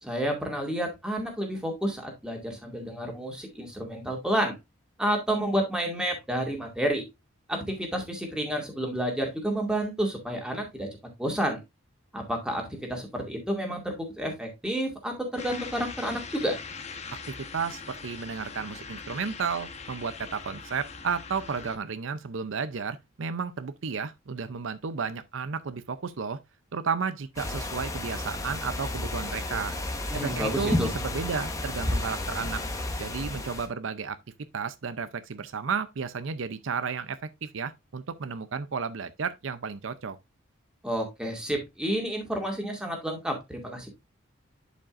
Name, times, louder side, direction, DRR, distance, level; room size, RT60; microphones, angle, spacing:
voice 1, 0.0-4.5 5.0-7.1 7.5-10.9 11.2-11.6 12.1-16.6 30.1-30.9 40.8-43.9, right 1 dB, 5° right, 2.2 m, -30 dB
sound 1, 15.4-21.8, left 5 dB, 30° left, 1.0 m, -41 dB
voice 2, 17.3-26.4 26.7-29.8 30.1-32.6 33.0-34.2 34.5-40.2, right 5 dB, 70° right, 0.6 m, -33 dB
sound 2, 27.4-33.7, left 1 dB, 15° left, 1.1 m, -32 dB
11.0 x 5.2 x 2.5 m
head